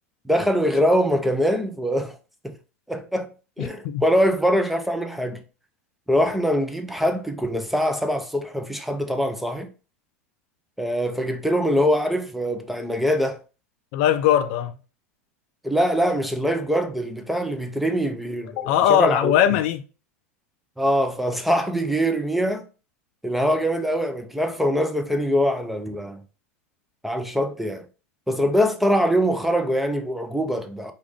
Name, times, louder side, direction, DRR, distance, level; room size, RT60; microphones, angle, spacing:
voice 1, 0.2-2.2 2.4-2.5 2.9-3.3 3.6-5.4 6.1-9.7 10.8-13.4 15.6-19.3 20.8-22.6 23.2-26.2 27.0-27.9 28.3-30.9, equal, ahead, 0.6 m, -23 dB
voice 2, 3.6-4.0 13.9-14.7 18.6-19.8, left 11 dB, 55° left, 0.4 m, -20 dB
4.7 x 2.4 x 3.5 m
hypercardioid pair, 85°, 8 cm